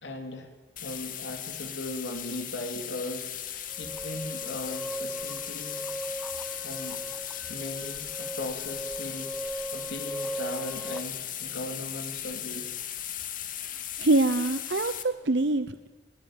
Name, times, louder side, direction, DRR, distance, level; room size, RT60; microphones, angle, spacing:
voice 1, 0.0-0.5 0.8-5.9 6.6-7.0 7.5-12.8, left 1 dB, 90° left, 4 dB, 3.3 m, -38 dB
sound 1, 0.8-15.0, left 10 dB, 50° left, 2.1 m, -37 dB
sound 2, 3.7-11.0, right 1 dB, ahead, 0.9 m, -38 dB
voice 2, 14.0-15.9, right 2 dB, 75° right, 11 dB, 0.9 m, -25 dB
22.0 x 19.0 x 9.1 m, 1.3 s
head